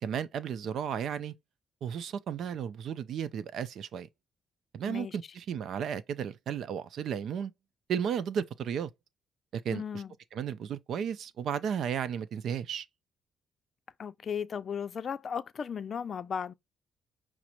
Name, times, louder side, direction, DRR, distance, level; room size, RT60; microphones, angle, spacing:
voice 1, 0.0-1.3 1.8-4.1 4.7-7.5 7.9-8.9 9.5-10.0 10.3-12.9, right 8 dB, 70° right, 0.5 m, -34 dB
voice 2, 4.9-5.2 9.7-10.1 14.0-16.5, left 7 dB, 50° left, 0.4 m, -36 dB
6.0 x 2.0 x 4.3 m
cardioid pair, 90°, 0 cm